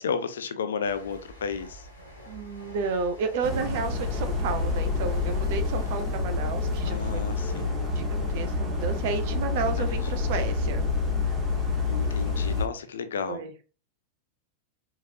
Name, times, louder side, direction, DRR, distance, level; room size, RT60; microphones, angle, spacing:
voice 1, 0.0-1.9 6.8-7.7 9.8-10.0 11.9-13.5, left 6 dB, 65° left, 0.6 m, -32 dB
sound 1, 0.8-8.3 8.6-8.9, equal, 90° right, 2.3 m, -48 dB
voice 2, 2.3-7.3 7.9-10.8 13.3-13.5, right 5 dB, 50° right, 0.7 m, -32 dB
sound 2, 3.4-12.6, left 3 dB, 25° right, 1.4 m, -28 dB
4.6 x 3.2 x 2.7 m
figure-of-eight pair, 90°, 0 cm